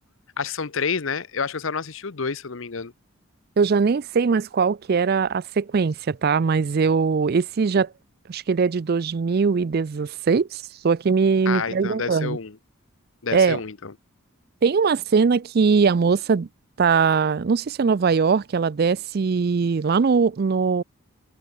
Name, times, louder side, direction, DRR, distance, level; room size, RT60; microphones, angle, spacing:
voice 1, 0.4-2.9 11.5-12.6 13.2-13.9, left 5 dB, 65° left, 0.9 m, -29 dB
voice 2, 3.6-7.9 8.3-12.4 13.3-13.6 14.6-16.5 16.8-20.8, right 5 dB, 45° right, 0.4 m, -21 dB
head